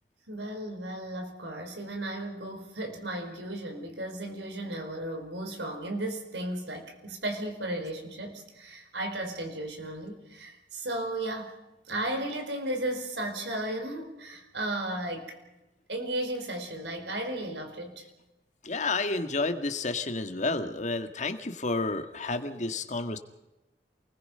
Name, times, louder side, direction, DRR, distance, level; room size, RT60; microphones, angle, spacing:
voice 1, 0.3-11.5 11.9-15.4 15.9-18.0, right 1 dB, 80° right, 4 dB, 4.9 m, -35 dB
voice 2, 18.6-23.2, left 3 dB, 45° left, 8 dB, 1.8 m, -30 dB
28.5 x 20.5 x 5.6 m, 0.98 s
head